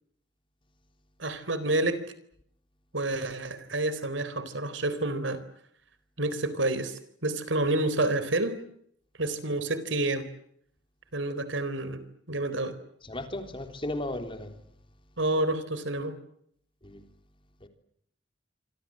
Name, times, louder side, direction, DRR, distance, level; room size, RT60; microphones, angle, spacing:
voice 1, 1.2-2.0 2.9-5.4 6.2-8.6 9.2-10.3 11.1-12.8 15.2-16.2, right 2 dB, 75° right, 4.0 m, -29 dB
voice 2, 13.1-14.6 16.8-17.0 17.6-17.7, left 1 dB, 30° left, 3.7 m, -35 dB
26.5 x 26.5 x 7.6 m
head